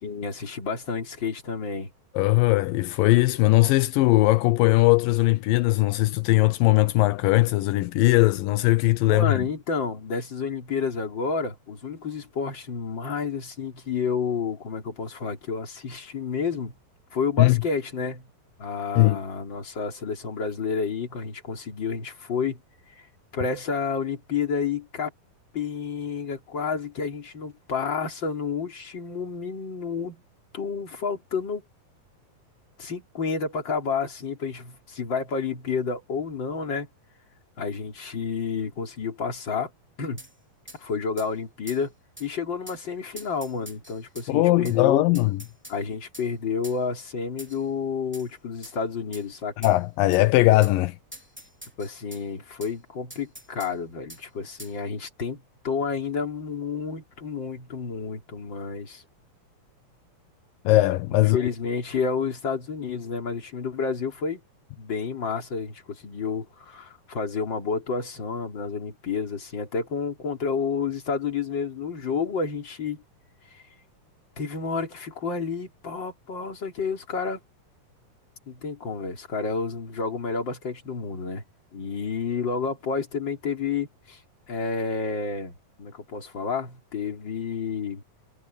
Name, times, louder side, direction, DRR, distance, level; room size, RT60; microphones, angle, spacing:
voice 1, 0.0-1.9 9.1-16.7 17.1-18.3 18.6-22.6 23.0-23.1 23.3-25.1 25.5-30.2 30.5-31.6 32.8-36.9 37.6-39.7 40.0-40.2 40.7-41.9 42.2-45.0 45.7-49.5 51.8-59.0 61.1-64.4 64.8-73.0 73.5-73.6 74.4-77.4 78.5-81.4 81.7-84.2 84.5-88.0, left 5 dB, 35° left, 3.7 m, -30 dB
voice 2, 2.2-9.4 17.4-17.6 19.0-19.2 44.3-45.4 49.6-51.0 60.7-61.4, left 19 dB, 85° left, 2.4 m, -20 dB
sound 1, 40.2-40.3 40.7-40.8 41.2-41.3 41.7-41.8 42.2-42.3 42.7-42.8 43.2-44.3 44.6-44.8 45.1-45.8 46.1-46.3 46.6-46.8 47.4-47.7 48.1-48.3 48.6-48.8 49.1-49.3 49.6-49.8 50.1-50.2 50.6-50.8 51.1-52.2 52.6-52.7 53.1-53.7 54.1-54.2 54.6-54.8, equal, 5° right, 3.3 m, -44 dB
omnidirectional pair, 3.9 m